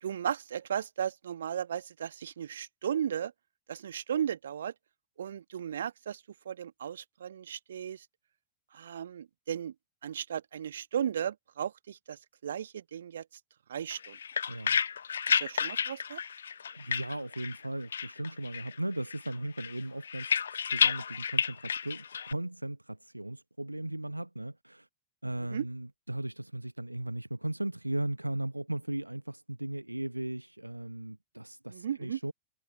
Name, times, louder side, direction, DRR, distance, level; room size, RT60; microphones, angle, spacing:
voice 1, 0.0-3.3 3.7-4.7 5.2-8.0 8.7-9.7 10.0-13.2 13.7-14.2 15.3-16.2 25.5-25.6 31.7-32.2, right 9 dB, 65° right, 1.5 m, -35 dB
sound 1, 13.9-17.6 17.9-18.8 19.1-22.3, left 7 dB, 70° left, 0.3 m, -31 dB
voice 2, 14.5-14.8 16.8-24.9 25.2-32.3, right 1 dB, 85° right, 1.0 m, -37 dB
figure-of-eight pair, 90°, 0 cm